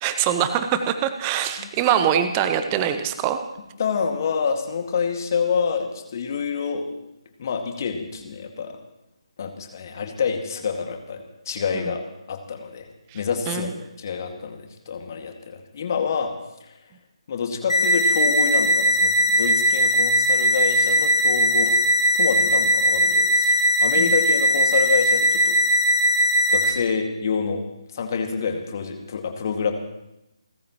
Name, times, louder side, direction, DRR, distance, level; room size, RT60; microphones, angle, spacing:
voice 1, 0.0-3.4 13.1-13.2 13.5-13.7 24.0-24.1, right 9 dB, 20° right, 10 dB, 0.8 m, -23 dB
voice 2, 3.8-6.9 7.4-8.8 9.4-12.0 12.3-12.9 13.1-16.3 17.3-21.8 22.1-25.6 26.5-27.6 27.9-29.7, left 6 dB, 35° left, 4 dB, 2.1 m, -27 dB
sound 1, 17.7-26.7, equal, 85° left, 6.7 m, -19 dB
29.5 x 13.5 x 3.1 m, 0.89 s
figure-of-eight pair, 145°, 3 cm